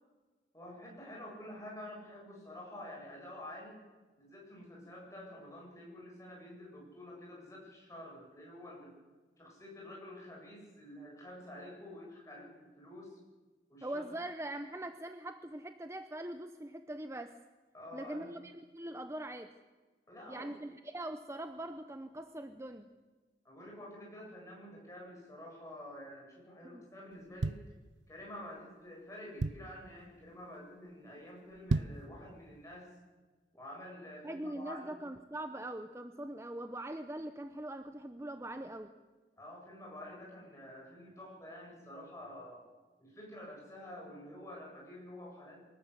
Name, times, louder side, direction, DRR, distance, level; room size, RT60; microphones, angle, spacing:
voice 1, 0.5-3.8 4.2-8.9 9.4-13.2 13.7-14.2 17.7-18.3 20.1-20.7 23.4-27.6 28.1-32.9 33.5-35.0 39.4-42.6 43.0-45.6, left 1 dB, 15° left, -2 dB, 8.0 m, -49 dB
voice 2, 13.8-17.4 17.9-19.5 20.3-22.9 26.6-26.8 34.2-38.9, right 1 dB, 15° right, 8 dB, 0.8 m, -42 dB
sound 1, 27.1-28.4 28.9-29.0 29.1-29.9 30.4-30.6 30.9-31.0 31.5-32.1 32.6-32.7, right 3 dB, 90° right, 0.6 m, -34 dB
24.0 x 19.0 x 8.2 m, 1.4 s
head